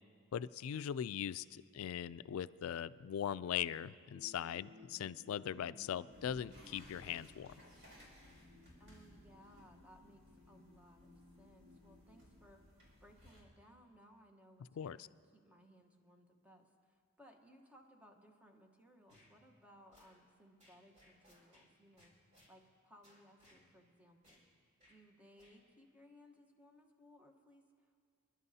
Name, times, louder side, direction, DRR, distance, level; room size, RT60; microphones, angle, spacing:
voice 1, 0.3-7.5 14.8-15.0, left 9 dB, 85° left, 16 dB, 0.3 m, -40 dB
sound 1, 4.1-13.1, left 2 dB, 80° right, 3.0 m, -62 dB
sound 2, 6.1-13.4, equal, 65° right, 4.1 m, -62 dB
voice 2, 8.8-10.2 10.5-11.1 11.4-12.7 13.0-22.1 22.5-24.4 24.9-28.0, equal, 5° right, 3 dB, 1.1 m, -63 dB
sound 3, 19.1-19.3 19.9-20.2 20.6-21.7 22.0-22.5 23.0-23.6 24.2-24.4 24.8-25.0 25.4-25.6, left 1 dB, 35° right, 3.9 m, -66 dB
27.0 x 11.5 x 2.8 m, 2.2 s
head